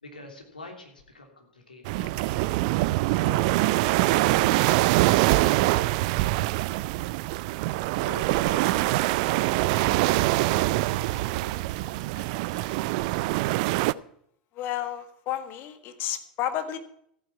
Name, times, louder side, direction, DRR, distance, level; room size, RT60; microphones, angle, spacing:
voice 1, 0.0-2.5 3.1-6.7 7.1-7.2 8.0-9.2 9.8-13.2, left 3 dB, 85° left, 2 dB, 3.1 m, -47 dB
sound 1, 1.8-13.9, right 19 dB, 55° right, 0.4 m, -24 dB
voice 2, 14.5-16.8, left 11 dB, 45° left, 9 dB, 1.6 m, -31 dB
14.5 x 9.4 x 5.7 m, 0.69 s
figure-of-eight pair, 85°, 5 cm